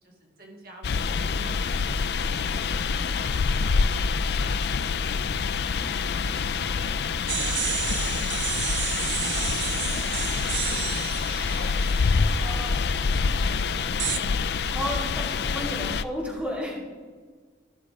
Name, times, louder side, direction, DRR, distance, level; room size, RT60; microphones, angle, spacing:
voice 1, 0.0-6.3 6.6-7.2 7.4-8.8 9.2-10.9 11.5-12.6 13.2-14.2, right 1 dB, 55° right, -1 dB, 1.9 m, -49 dB
sound 1, 0.8-16.0, left 5 dB, 60° left, 0.4 m, -26 dB
sound 2, 7.3-13.0 14.0-14.2, right 10 dB, 80° right, 0.7 m, -32 dB
voice 2, 12.4-12.8 14.7-16.8, equal, 10° right, -4 dB, 2.4 m, -33 dB
14.5 x 6.5 x 4.8 m, 1.5 s
head